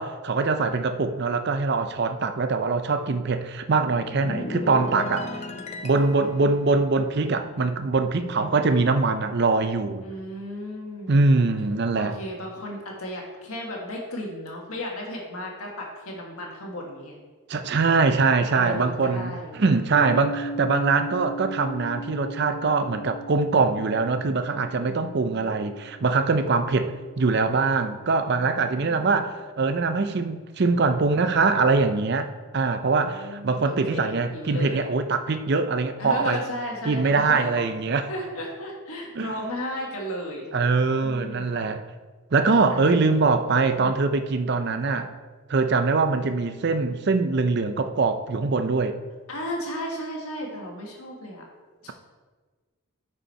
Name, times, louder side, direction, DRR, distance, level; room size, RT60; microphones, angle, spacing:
voice 1, 0.0-5.4 5.8-10.0 11.1-12.2 17.5-36.4 36.9-38.1 39.2-39.3 40.5-41.8 42.3-45.1 45.5-48.9, right 4 dB, 50° right, 9 dB, 0.5 m, -23 dB
sound 1, 3.7-8.3 8.6-8.9, left 2 dB, 30° left, 0.4 m, -37 dB
voice 2, 4.4-5.8 8.4-8.8 10.0-11.2 12.0-17.2 18.5-19.6 24.9-25.5 28.3-29.3 32.8-34.9 36.0-37.5 38.1-40.5 41.0-41.6 42.7-42.9 43.7-43.9 49.3-51.4 51.8-51.9, left 1 dB, 80° left, -1 dB, 1.6 m, -35 dB
sound 2, 19.9-27.7, right 2 dB, 45° left, 1.0 m, -38 dB
9.7 x 5.4 x 4.3 m, 1.4 s
head